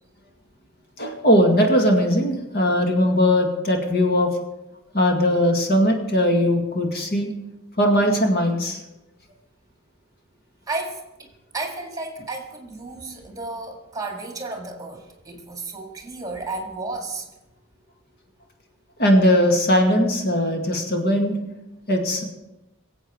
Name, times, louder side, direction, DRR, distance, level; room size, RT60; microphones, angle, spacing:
voice 1, 1.0-4.3 4.9-7.3 7.8-8.8 19.0-21.4 21.9-22.2, equal, 50° left, 2 dB, 2.1 m, -19 dB
voice 2, 10.7-17.3, right 3 dB, 20° right, 2 dB, 1.9 m, -33 dB
23.5 x 8.0 x 4.9 m, 0.95 s
head